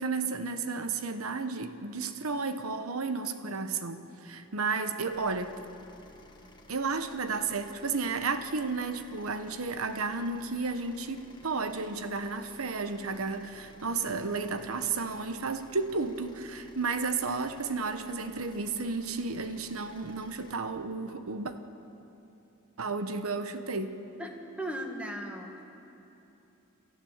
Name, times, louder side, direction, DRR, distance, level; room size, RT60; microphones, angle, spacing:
voice 1, 0.0-5.5 6.7-21.5 22.8-23.9, right 4 dB, 80° right, 9 dB, 1.1 m, -32 dB
sound 1, 5.1-20.5, left 1 dB, 20° left, 1.4 m, -55 dB
voice 2, 24.2-25.6, equal, 5° right, 2 dB, 1.9 m, -38 dB
28.5 x 13.5 x 7.3 m, 2.9 s
head